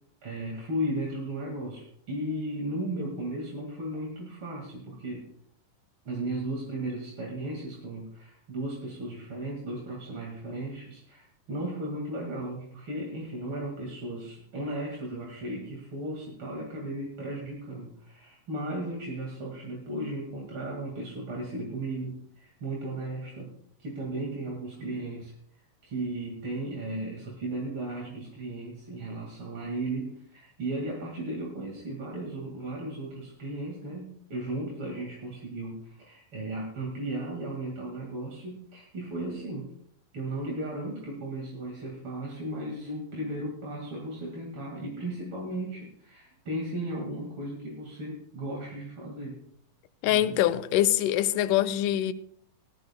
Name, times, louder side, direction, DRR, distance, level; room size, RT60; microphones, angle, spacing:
voice 1, 0.2-5.3 6.1-23.5 23.8-25.3 25.8-39.7 40.1-49.4 50.1-50.4, right 1 dB, 40° right, 2.4 m, -35 dB
voice 2, 50.0-52.1, left 13 dB, 75° left, 2.0 m, -24 dB
18.5 x 14.0 x 2.2 m
omnidirectional pair, 4.0 m